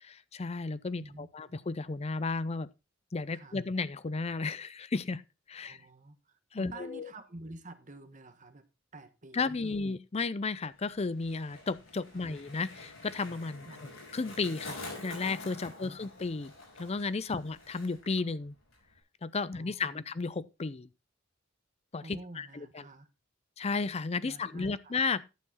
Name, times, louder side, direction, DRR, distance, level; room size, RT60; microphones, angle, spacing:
voice 1, 0.0-2.7 3.1-5.2 5.5-5.8 6.5-7.1 9.3-13.7 14.1-16.5 16.8-18.5 19.2-20.9 21.9-22.7 23.6-25.2, left 4 dB, 30° left, 0.5 m, -33 dB
voice 2, 3.3-3.6 5.6-8.7 8.9-10.0 12.1-12.5 13.6-13.9 15.6-16.1 17.3-17.5 19.5-20.1 22.0-23.1 24.2-25.0, right 2 dB, 40° right, 1.3 m, -49 dB
Skateboard, 10.7-18.2 18.5-19.0, left 2 dB, 80° left, 6.2 m, -47 dB
11.5 x 7.0 x 4.0 m
head